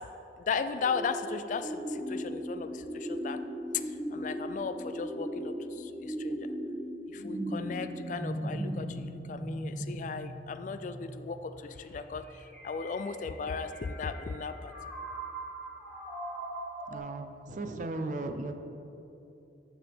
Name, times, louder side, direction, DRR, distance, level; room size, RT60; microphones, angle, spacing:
voice 1, 0.5-3.4 3.7-6.4 7.1-14.7, left 5 dB, 45° left, 10 dB, 0.3 m, -36 dB
sound 1, 0.8-17.0, right 1 dB, 10° left, 1.5 m, -38 dB
voice 2, 16.9-18.5, right 2 dB, 45° right, 7 dB, 0.5 m, -36 dB
13.0 x 6.1 x 3.5 m, 2.9 s
head